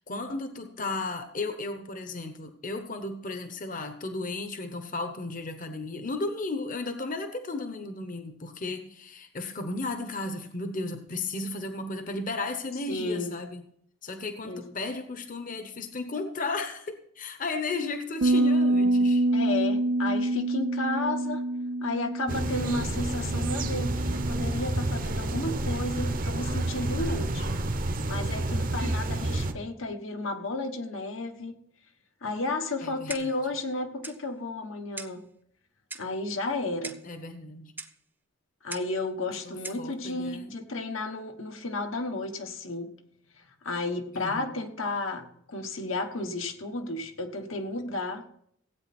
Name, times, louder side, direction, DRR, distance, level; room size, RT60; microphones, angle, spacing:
voice 1, 0.1-13.6 14.0-19.3 27.0-27.2 32.8-33.1 37.0-37.7 39.3-40.5 44.1-44.5, left 3 dB, 40° left, 8 dB, 0.9 m, -34 dB
voice 2, 12.9-13.3 14.4-14.7 19.3-21.5 21.8-27.6 28.1-31.6 32.2-35.2 35.9-37.0 38.6-42.9 43.6-48.2, left 2 dB, 80° left, 5 dB, 1.3 m, -33 dB
sound 1, 18.2-24.5, right 1 dB, 85° right, 0.7 m, -26 dB
sound 2, 22.3-29.5, right 2 dB, 45° right, 0.8 m, -29 dB
Clock, 33.1-33.5 34.0-34.2 35.0-35.2 35.9-36.2 36.8-37.1 37.8-38.0 38.7-39.0 39.6-39.9, right 3 dB, 10° right, 0.5 m, -40 dB
16.0 x 8.6 x 4.3 m, 0.68 s
head